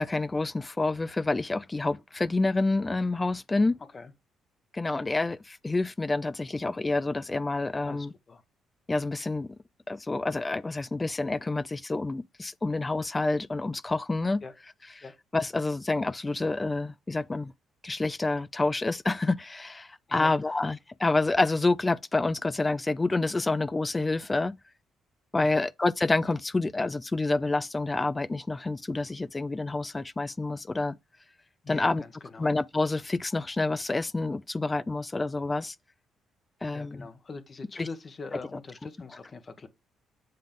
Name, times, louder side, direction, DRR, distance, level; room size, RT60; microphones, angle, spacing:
voice 1, 0.0-3.8 4.7-8.1 8.9-9.6 9.9-14.4 15.3-17.5 17.8-24.5 25.3-31.0 31.7-32.0 32.4-35.8 36.6-37.1 37.8-37.9, left 3 dB, 20° left, 0.3 m, -28 dB
voice 2, 7.8-8.4 14.4-14.5 15.0-15.1 20.1-20.4 25.4-25.6 31.6-32.5 36.7-39.7, left 4 dB, 35° left, 1.0 m, -42 dB
7.7 x 3.5 x 3.6 m
cardioid pair, 90°, 0 cm